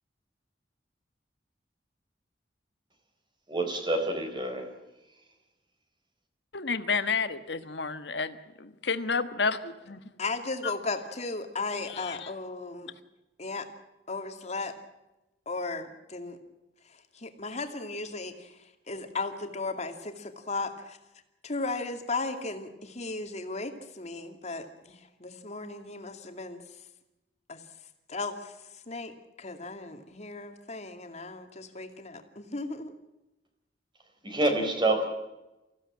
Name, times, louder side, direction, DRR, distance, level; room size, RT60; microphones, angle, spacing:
voice 1, 3.5-4.7 34.2-35.1, right 2 dB, 25° right, 5 dB, 4.4 m, -27 dB
voice 2, 6.5-10.0 12.0-12.2, left 4 dB, 70° left, 10 dB, 1.5 m, -30 dB
voice 3, 10.2-12.9 13.4-13.7 14.1-14.7 15.5-16.4 16.8-21.0 21.4-26.6 27.5-27.6 28.1-32.9, left 3 dB, 40° left, 6 dB, 2.4 m, -36 dB
24.5 x 16.0 x 8.8 m, 0.99 s
head